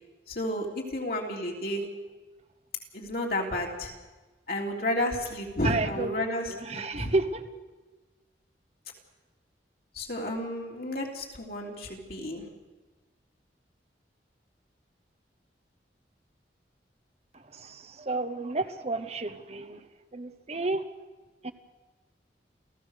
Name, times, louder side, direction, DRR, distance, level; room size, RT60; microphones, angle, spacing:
voice 1, 0.3-1.8 2.9-3.9 4.5-7.1 9.9-12.4, left 1 dB, 55° left, 0 dB, 3.5 m, -31 dB
voice 2, 5.6-6.2 6.5-7.4 17.5-19.8 20.1-20.8 21.4-21.5, right 3 dB, 35° right, 9 dB, 1.0 m, -31 dB
29.0 x 15.5 x 6.7 m, 1.2 s
head